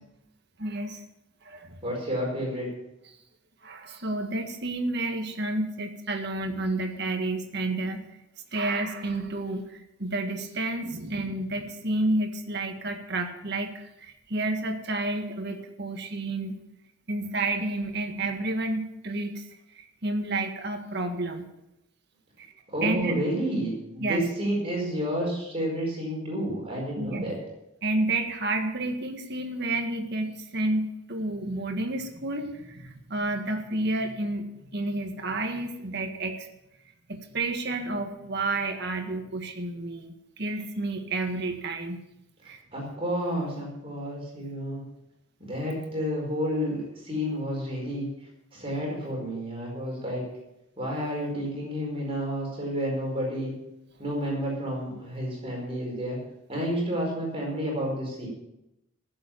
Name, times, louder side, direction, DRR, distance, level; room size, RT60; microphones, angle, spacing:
voice 1, 0.6-1.0 1.4-1.8 3.6-8.0 8.5-16.6 17.1-19.5 19.7-21.5 22.4-22.5 22.8-23.2 24.0-24.2 27.0-27.3 27.8-36.5 37.1-42.0 42.4-42.6, right 2 dB, 50° right, 5 dB, 1.7 m, -30 dB
voice 2, 1.8-2.7 22.7-27.4 42.4-44.8 45.4-48.1 48.5-50.2 50.8-53.5 54.0-56.2 56.5-58.3, equal, 25° right, -2 dB, 4.7 m, -30 dB
15.5 x 7.7 x 7.1 m, 0.87 s
head